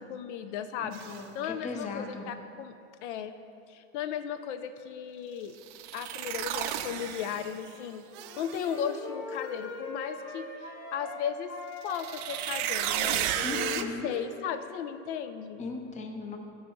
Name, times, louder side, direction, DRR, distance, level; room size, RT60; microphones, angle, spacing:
voice 1, 0.1-1.0 1.3-2.8 3.0-3.3 3.7-5.6 5.9-8.1 8.4-11.5 11.8-15.6, left 8 dB, 70° left, 10 dB, 0.5 m, -36 dB
voice 2, 0.8-2.3 13.4-14.1 15.6-16.4, left 3 dB, 20° left, 4 dB, 0.6 m, -38 dB
sound 1, 0.9-1.2 5.6-7.7 8.1-8.8 11.8-13.8, right 11 dB, 45° right, 0.4 m, -33 dB
Wind instrument woodwind instrument, 8.2-11.2 11.5-14.8, left 3 dB, 40° left, 1.8 m, -42 dB
12.0 x 4.7 x 3.1 m, 2.7 s
supercardioid pair, 130°, 37 cm